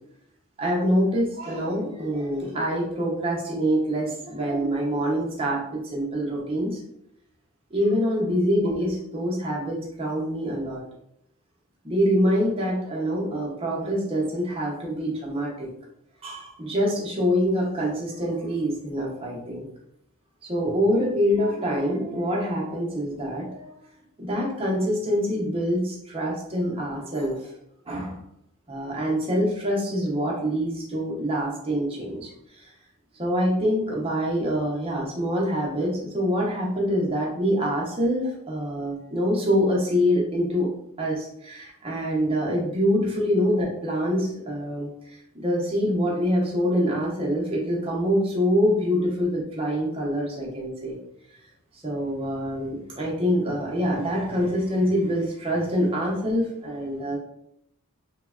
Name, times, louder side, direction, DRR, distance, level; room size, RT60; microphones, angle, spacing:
voice 1, 0.6-6.8 7.7-10.8 11.8-15.7 16.2-19.7 20.4-23.7 24.2-27.4 27.9-28.2 28.7-32.3 32.6-32.7 33.2-40.7 41.0-44.9 45.3-51.0 51.7-57.2, equal, 25° right, -3 dB, 0.6 m, -25 dB
3.3 x 2.1 x 2.3 m, 0.77 s
head